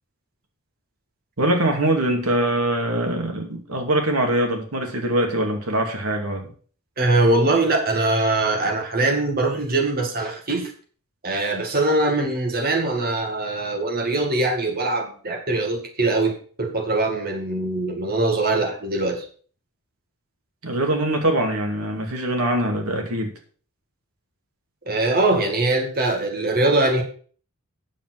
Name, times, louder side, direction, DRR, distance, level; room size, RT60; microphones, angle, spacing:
voice 1, 1.4-6.5 20.6-23.3, right 1 dB, 85° right, 3 dB, 2.3 m, -23 dB
voice 2, 7.0-10.7 11.2-19.2 24.9-27.0, right 2 dB, 45° right, 3 dB, 2.1 m, -22 dB
9.0 x 7.3 x 6.2 m, 0.43 s
head